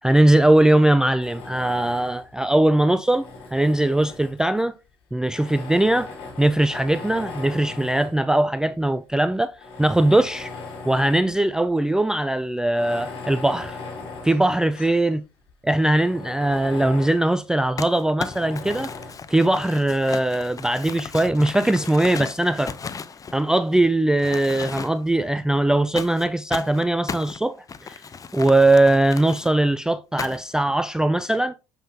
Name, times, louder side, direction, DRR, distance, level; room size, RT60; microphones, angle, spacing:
voice 1, 0.0-4.7 5.1-10.5 10.8-13.8 14.2-15.2 15.6-18.9 19.3-22.8 23.3-27.6 27.8-28.0 28.3-31.5, right 1 dB, 5° right, 0.3 m, -20 dB
Tools, 1.2-2.3 3.0-4.6 5.3-8.2 8.9-9.0 9.5-11.3 11.7-11.8 12.6-15.1 15.5-15.6 15.9-17.3 18.2-19.3, left 4 dB, 60° left, 3.3 m, -38 dB
Crumpling crinkling, 17.8-23.8 24.2-25.2 26.0-29.5 30.2-30.6, left 5 dB, 30° left, 0.7 m, -35 dB
7.4 x 5.5 x 2.8 m
hypercardioid pair, 60°, 12 cm